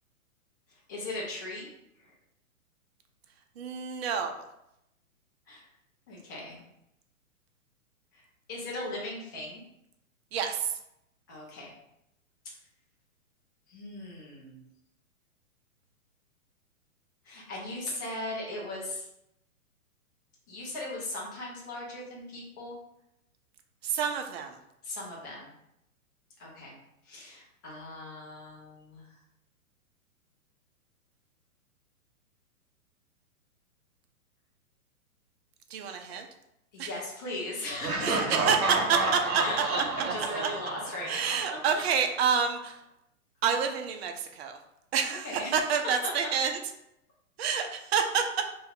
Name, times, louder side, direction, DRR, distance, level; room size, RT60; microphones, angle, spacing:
voice 1, 0.9-1.7 2.0-2.1 5.5-5.6 6.1-6.6 8.1-8.2 8.5-9.6 11.3-11.7 13.7-14.6 17.2-19.1 20.5-22.8 24.8-25.5 26.4-26.8 27.0-29.1 36.7-38.3 39.4-41.4 41.7-41.8 45.0-45.5 46.0-46.1 47.4-47.6, left 1 dB, 15° left, -4 dB, 0.3 m, -38 dB
voice 2, 3.6-4.3 10.3-10.7 23.8-24.6 35.7-36.3 36.8-36.9 38.0-39.4 41.1-42.8 43.4-44.6 44.9-46.6 47.4-48.2, right 7 dB, 45° right, 5 dB, 0.5 m, -28 dB
Laughter, 37.8-41.7, right 3 dB, 75° right, 0.8 m, -30 dB
2.8 x 2.2 x 3.5 m, 0.83 s
hypercardioid pair, 120°, 43 cm